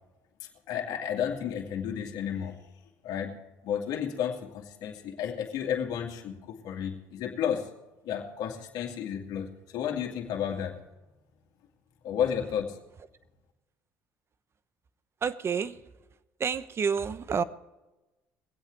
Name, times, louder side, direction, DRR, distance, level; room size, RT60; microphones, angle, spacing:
voice 1, 0.7-2.6 3.0-3.3 3.6-7.7 8.0-10.7 12.0-12.8, left 8 dB, 70° left, 1 dB, 2.3 m, -32 dB
voice 2, 15.2-15.8 16.4-17.4, right 6 dB, 40° right, 15 dB, 0.9 m, -29 dB
22.0 x 8.3 x 4.7 m, 1.1 s
supercardioid pair, 80°, 7 cm